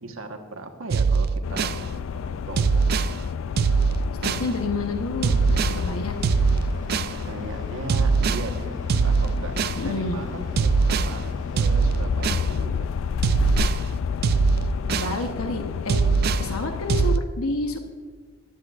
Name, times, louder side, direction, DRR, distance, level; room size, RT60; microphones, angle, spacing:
voice 1, 0.0-2.8 7.2-12.9, right 2 dB, 70° right, 4 dB, 1.3 m, -38 dB
sound 1, 0.9-1.8 2.6-3.1 3.6-4.5 5.2-5.8 6.2-7.1 7.9-8.5 8.9-9.8 10.6-11.1 11.6-12.5 13.2-13.8 14.2-15.2 15.9-16.5 16.9-17.2, right 5 dB, 45° right, 0.3 m, -21 dB
sound 2, 1.4-17.2, left 6 dB, 65° left, 0.3 m, -30 dB
voice 2, 4.2-6.2 9.8-10.2 14.9-16.0 16.4-17.8, left 2 dB, 80° left, 5 dB, 1.1 m, -29 dB
sound 3, 5.2-13.5, left 1 dB, 40° left, 4.0 m, -44 dB
18.0 x 12.5 x 2.5 m, 1.5 s
head